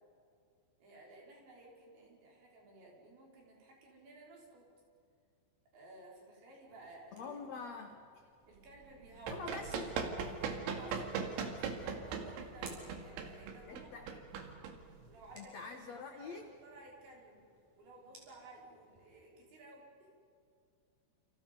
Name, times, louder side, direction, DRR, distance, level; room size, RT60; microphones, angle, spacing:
voice 1, 0.8-4.7 5.7-7.3 7.6-7.7 8.5-9.5 10.4-14.2 15.1-17.4 17.8-20.1, right 2 dB, 70° right, -2 dB, 7.8 m, -56 dB
sound 1, 6.7-19.1, right 2 dB, 45° right, 6.7 m, -64 dB
voice 2, 7.1-8.3 9.3-10.0 10.8-11.1 13.7-14.2 15.3-16.5, left 4 dB, 75° left, 4 dB, 1.5 m, -46 dB
Run, 8.9-15.3, right 6 dB, 90° right, 4.5 m, -39 dB
29.0 x 29.0 x 5.6 m, 2.5 s
omnidirectional pair, 5.3 m